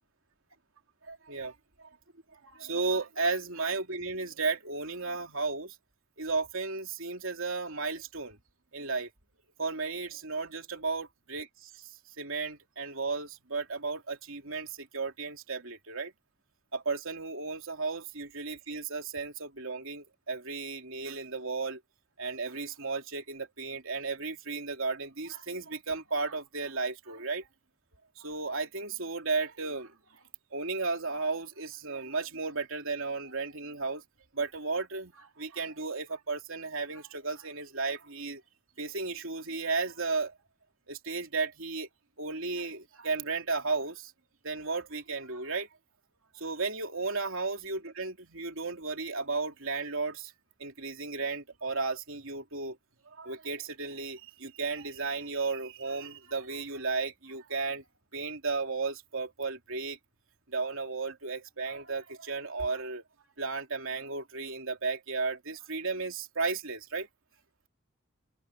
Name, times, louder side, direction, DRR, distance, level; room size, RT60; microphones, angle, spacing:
voice 1, 1.1-1.9 2.4-5.7 6.2-8.4 8.7-9.1 9.6-11.9 12.2-16.1 16.7-21.8 22.2-27.5 28.2-29.9 30.5-34.0 34.3-38.4 38.8-40.3 40.9-41.9 42.2-44.1 44.4-45.7 46.4-50.3 50.6-52.8 53.2-57.8 58.1-60.0 60.5-63.0 63.4-67.1, right 4 dB, 70° right, 2.9 m, -34 dB
head